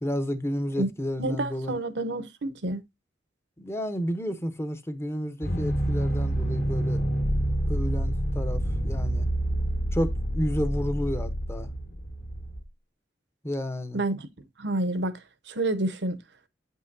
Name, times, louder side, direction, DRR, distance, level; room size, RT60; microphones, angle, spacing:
voice 1, 0.0-1.7 3.6-7.0 7.7-9.3 9.9-11.7 13.4-14.0, equal, 15° left, 0.8 m, -31 dB
voice 2, 1.2-2.8 13.9-15.2 15.5-16.2, right 2 dB, 75° right, 0.9 m, -29 dB
sound 1, 5.4-12.6, right 1 dB, 55° left, 1.8 m, -27 dB
8.6 x 5.5 x 2.6 m
head